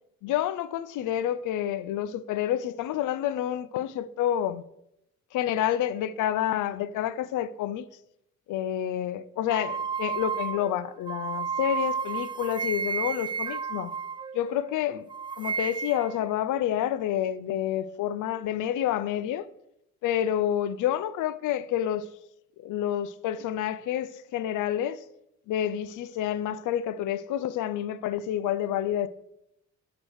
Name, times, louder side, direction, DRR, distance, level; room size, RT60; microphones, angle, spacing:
voice 1, 0.2-4.6 5.3-7.9 8.5-13.9 14.3-15.1 15.4-19.5 20.0-22.1 22.6-25.0 25.5-29.1, left 11 dB, 80° left, 0.6 m, -29 dB
sound 1, 9.5-14.8 15.1-16.2, right 6 dB, 15° right, 0.4 m, -32 dB
7.8 x 6.1 x 6.3 m
cardioid pair, 90°, 30 cm